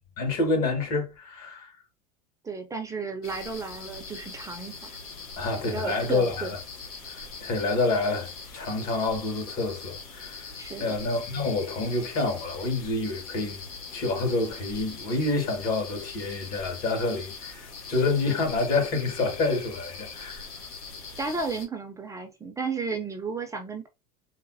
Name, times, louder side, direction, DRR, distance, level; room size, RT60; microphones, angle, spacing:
voice 1, 0.2-1.7 5.4-6.5 7.1-10.5 10.8-13.6 13.9-20.5, left 3 dB, 50° left, 1.8 m, -28 dB
voice 2, 2.4-4.9 5.7-6.5 10.6-10.9 21.2-23.9, right 4 dB, 15° right, 0.6 m, -33 dB
sound 1, 3.2-21.7, left 4 dB, 80° left, 1.3 m, -42 dB
4.0 x 2.0 x 2.7 m
hypercardioid pair, 95°, 19 cm